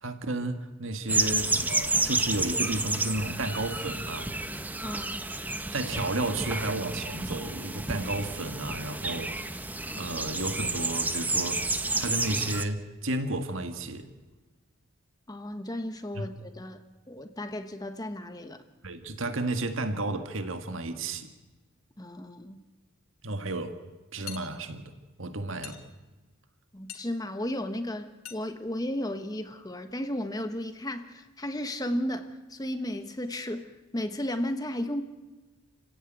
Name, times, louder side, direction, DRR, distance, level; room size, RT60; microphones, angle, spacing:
voice 1, 0.0-4.4 5.7-9.6 9.9-11.7 12.0-14.1 16.1-16.3 18.8-21.3 23.2-23.8 24.1-25.8, right 2 dB, 65° right, 8 dB, 1.9 m, -32 dB
sound 1, 1.1-12.6, right 2 dB, 10° right, 0.9 m, -30 dB
voice 2, 4.8-5.2 15.3-18.6 22.0-22.6 26.7-35.0, left 1 dB, 15° left, 8 dB, 1.2 m, -34 dB
sound 2, 24.3-24.5 25.6-25.9 26.9-27.1 28.2-28.4, left 11 dB, 80° left, 2.6 m, -41 dB
29.5 x 16.5 x 9.1 m, 1.2 s
head